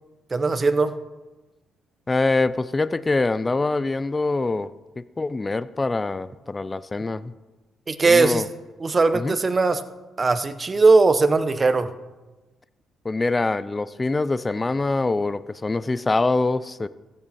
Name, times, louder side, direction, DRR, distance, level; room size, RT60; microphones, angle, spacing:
voice 1, 0.3-0.9 7.9-8.4 8.8-9.8 10.2-11.9, right 3 dB, 30° right, 11 dB, 0.8 m, -19 dB
voice 2, 2.1-4.7 5.0-7.3 8.1-8.5 9.1-9.3 13.0-16.9, left 3 dB, 20° left, 16 dB, 0.4 m, -24 dB
15.0 x 8.8 x 4.3 m, 1.1 s
cardioid pair, 90°, 0 cm